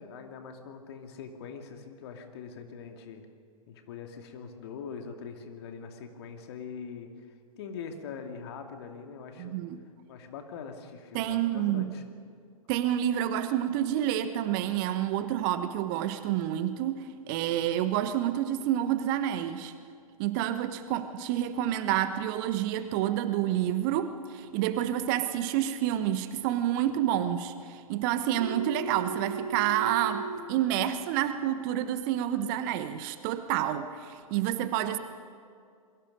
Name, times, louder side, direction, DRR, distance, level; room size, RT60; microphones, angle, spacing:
voice 1, 0.0-3.3 3.7-7.3 7.6-9.6 10.1-12.0, left 6 dB, 45° left, 4 dB, 2.5 m, -43 dB
voice 2, 9.4-9.8 11.1-11.9 12.7-19.7 20.2-35.0, right 11 dB, 35° right, 11 dB, 1.1 m, -29 dB
Telephone, 28.4-30.4, right 4 dB, 60° right, 2.7 m, -36 dB
28.0 x 22.5 x 5.3 m, 2.2 s
figure-of-eight pair, 105°, 19 cm